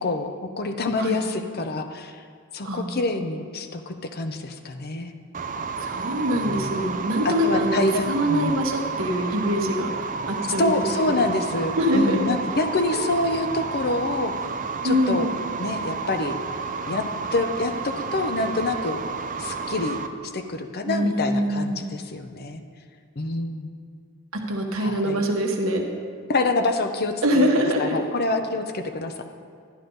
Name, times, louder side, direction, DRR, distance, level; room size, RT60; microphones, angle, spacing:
voice 1, 0.0-2.2 2.5-5.1 6.5-6.7 7.2-8.6 10.6-14.3 14.8-15.3 15.6-16.4 16.9-17.1 17.3-19.0 19.4-20.0 20.2-22.6 23.2-23.7 24.8-25.2 26.3-27.5 27.8-29.2, left 2 dB, 50° left, 7 dB, 0.8 m, -26 dB
sound 1, 5.3-20.1, right 4 dB, 40° right, 0.5 m, -31 dB
voice 2, 5.8-7.8 8.1-9.9 10.3-10.8 11.1-11.2 11.8-12.2 14.8-15.2 20.9-21.9 24.3-25.8 27.2-28.0, equal, 70° right, 1 dB, 1.4 m, -23 dB
11.5 x 10.5 x 3.9 m, 2.2 s
head